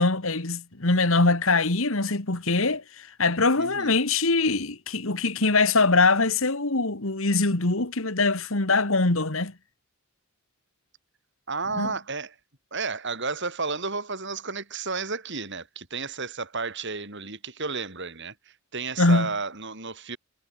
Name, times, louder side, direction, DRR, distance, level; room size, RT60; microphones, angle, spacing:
voice 1, 0.0-9.5 11.8-11.9 19.0-19.3, left 3 dB, 60° left, 2.1 m, -23 dB
voice 2, 3.6-4.0 11.5-12.4 12.7-20.2, right 4 dB, 55° right, 7.3 m, -32 dB
head